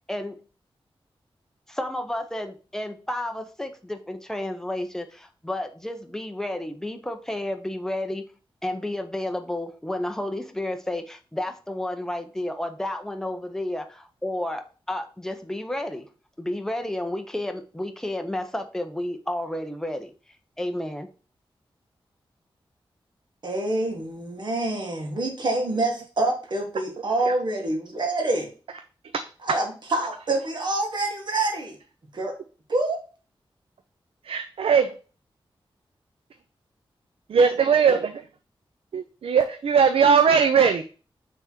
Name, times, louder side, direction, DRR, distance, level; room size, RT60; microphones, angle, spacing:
voice 1, 1.7-8.3 8.6-16.1 16.4-20.1 20.6-21.1, left 1 dB, 5° left, 6 dB, 0.6 m, -31 dB
voice 2, 23.4-28.5 29.4-31.8 32.1-32.3 32.7-33.0, right 2 dB, 55° right, 1 dB, 1.7 m, -26 dB
voice 3, 34.2-34.9 37.3-38.2 38.9-40.8, right 6 dB, 85° right, 8 dB, 0.5 m, -19 dB
5.9 x 3.5 x 4.5 m, 0.37 s
wide cardioid pair, 160°, 9 cm